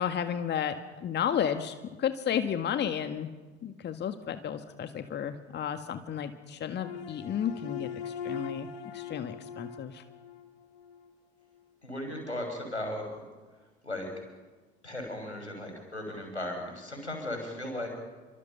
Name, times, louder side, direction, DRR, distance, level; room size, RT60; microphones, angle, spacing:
voice 1, 0.0-3.3 3.6-8.7 8.9-10.0, left 8 dB, 30° left, 8 dB, 1.7 m, -32 dB
sound 1, 6.8-11.1, left 7 dB, 65° left, 2.2 m, -41 dB
voice 2, 11.8-13.1 13.8-14.1 14.8-17.9, left 1 dB, 90° left, 3 dB, 6.2 m, -36 dB
29.5 x 24.5 x 5.7 m, 1.3 s
figure-of-eight pair, 70°, 33 cm